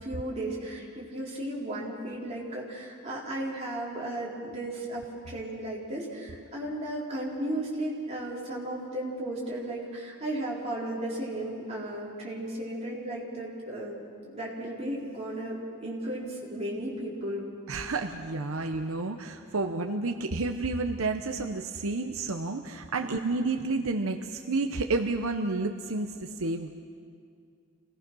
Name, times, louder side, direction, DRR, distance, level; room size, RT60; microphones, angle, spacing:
voice 1, 0.0-14.0 14.3-17.4 18.4-18.6 23.0-23.2, right 1 dB, 30° right, -5 dB, 4.3 m, -35 dB
voice 2, 17.7-26.8, right 3 dB, 75° right, 5 dB, 0.8 m, -30 dB
27.5 x 19.0 x 6.2 m, 2.3 s
head